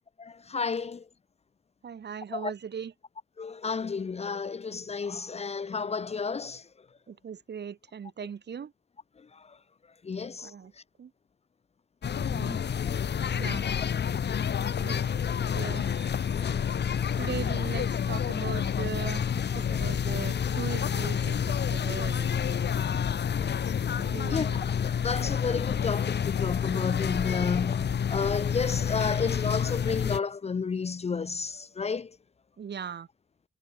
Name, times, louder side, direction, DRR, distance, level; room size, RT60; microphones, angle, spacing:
voice 1, 0.2-1.1 2.3-2.5 3.4-6.7 9.2-9.6 10.0-10.5 15.5-15.6 16.3-16.6 16.9-17.0 23.3-23.6 24.3-32.2, left 5 dB, 30° left, 0.8 m, -32 dB
voice 2, 1.8-2.9 7.1-8.7 10.4-10.7 11.0-11.1 12.2-12.6 13.3-13.7 14.8-15.0 15.5-15.9 17.2-22.3 24.0-24.6 32.6-33.1, right 7 dB, 60° right, 6.3 m, -39 dB
sound 1, 12.0-30.2, left 8 dB, 60° left, 2.3 m, -29 dB
sound 2, 15.8-17.9, right 4 dB, 35° right, 7.5 m, -56 dB
wide cardioid pair, 155°, 20 cm